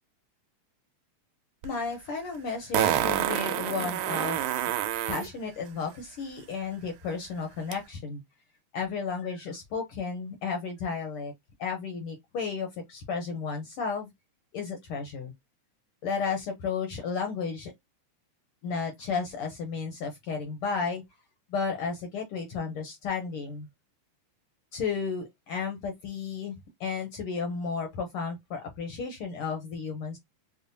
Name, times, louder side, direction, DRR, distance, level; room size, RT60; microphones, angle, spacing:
voice 1, 1.6-4.5 5.1-8.2 8.7-11.3 11.6-14.1 14.5-15.3 16.0-17.7 18.6-21.0 21.5-23.7 24.7-30.2, left 5 dB, 75° left, 1.2 m, -33 dB
Fart, 1.6-1.7 2.7-5.3 7.7-7.8, right 11 dB, 80° right, 1.9 m, -27 dB
5.4 x 2.0 x 2.6 m
omnidirectional pair, 3.4 m